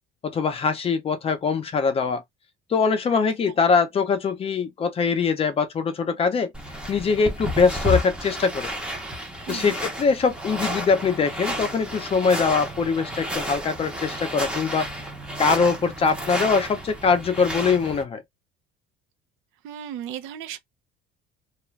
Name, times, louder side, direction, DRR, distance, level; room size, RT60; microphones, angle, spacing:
voice 1, 0.2-2.2 2.7-6.5 6.9-8.7 9.5-14.9 15.4-18.2, left 5 dB, 30° left, 0.6 m, -22 dB
sound 1, 6.5-18.0, equal, 5° right, 0.7 m, -31 dB
voice 2, 19.6-20.6, right 10 dB, 75° right, 0.6 m, -35 dB
2.4 x 2.2 x 3.1 m
cardioid pair, 140°, 21 cm